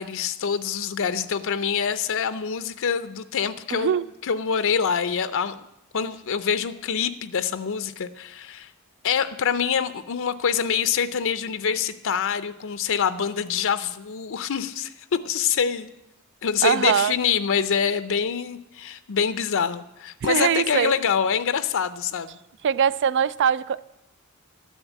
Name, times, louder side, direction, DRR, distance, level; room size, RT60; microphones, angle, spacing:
voice 1, 0.0-5.7 5.9-8.7 9.0-15.9 16.4-22.4, left 7 dB, 65° left, 0.6 m, -25 dB
voice 2, 3.7-4.0 16.6-17.1 20.2-20.9 22.6-23.8, right 8 dB, 55° right, 0.4 m, -22 dB
12.5 x 7.2 x 8.2 m
head